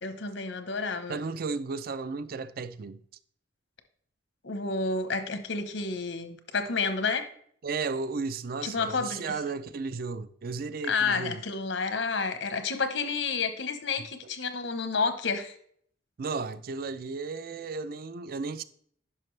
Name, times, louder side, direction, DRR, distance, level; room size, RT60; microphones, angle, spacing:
voice 1, 0.0-1.2 4.4-7.3 8.6-9.2 10.9-15.5, left 4 dB, 85° left, 1.0 m, -30 dB
voice 2, 1.1-3.0 7.6-11.4 16.2-18.6, right 4 dB, 55° right, 0.4 m, -34 dB
10.5 x 5.8 x 3.2 m
head